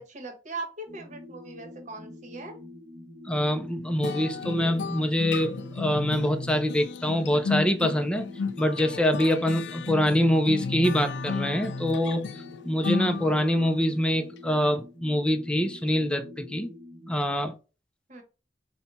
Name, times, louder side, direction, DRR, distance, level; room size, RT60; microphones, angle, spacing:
voice 1, 0.0-2.6 18.1-18.2, right 3 dB, 45° right, 1.0 m, -39 dB
sound 1, 0.9-17.2, left 2 dB, 20° right, 0.9 m, -46 dB
voice 2, 3.3-8.3 8.6-12.3 12.7-16.7 17.1-17.5, equal, 5° left, 0.4 m, -25 dB
sound 2, 4.0-13.7, left 4 dB, 75° left, 0.3 m, -33 dB
4.2 x 2.2 x 3.9 m
head